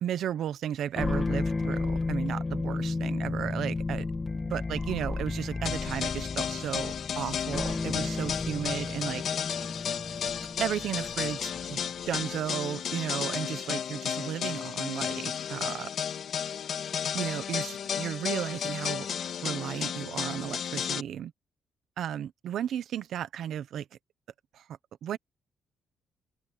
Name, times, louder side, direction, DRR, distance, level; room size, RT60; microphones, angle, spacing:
voice 1, 0.0-4.1 4.5-9.2 10.6-11.8 12.1-15.9 17.1-19.1 19.4-21.3 22.0-23.9 24.5-24.6 25.0-25.2, right 10 dB, 65° right, 1.0 m, -34 dB
sound 1, 0.9-12.3, left 3 dB, 20° left, 2.2 m, -33 dB
sound 2, 5.7-21.0, left 8 dB, 55° left, 2.3 m, -33 dB
cardioid pair, 165°, 0 cm